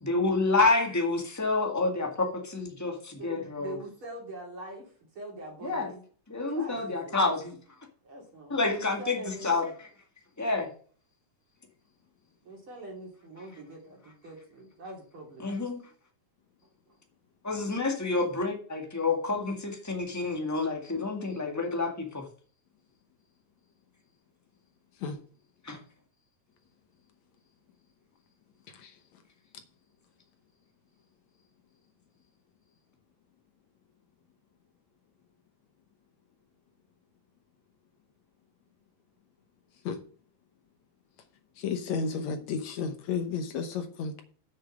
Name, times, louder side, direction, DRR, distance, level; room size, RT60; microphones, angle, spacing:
voice 1, 0.0-3.7 5.6-5.9 6.3-7.6 8.5-9.9 10.4-10.7 15.4-15.8 17.4-22.2 25.6-25.8, left 3 dB, 20° left, 2 dB, 0.5 m, -28 dB
voice 2, 3.2-4.9 5.2-6.0 6.5-7.2 8.0-9.7 12.5-15.5, right 2 dB, 40° right, 0 dB, 3.6 m, -43 dB
voice 3, 41.6-44.2, left 5 dB, 65° left, 7 dB, 2.0 m, -32 dB
8.1 x 6.5 x 6.4 m, 0.44 s
omnidirectional pair, 3.9 m